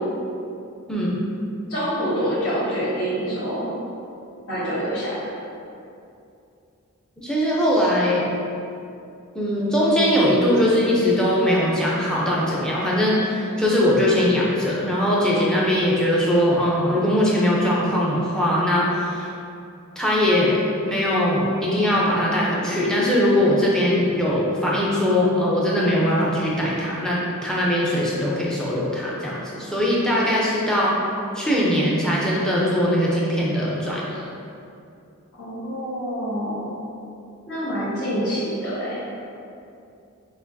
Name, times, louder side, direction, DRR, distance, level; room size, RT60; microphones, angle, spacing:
voice 1, 0.9-1.2 7.2-8.3 9.3-19.3 20.0-30.9 31.3-34.2, left 1 dB, 5° left, -6 dB, 0.6 m, -21 dB
voice 2, 1.7-3.7 4.5-5.2 35.4-36.7 37.5-39.0, equal, 65° left, -15 dB, 1.5 m, -26 dB
5.9 x 2.6 x 2.7 m, 2.6 s
head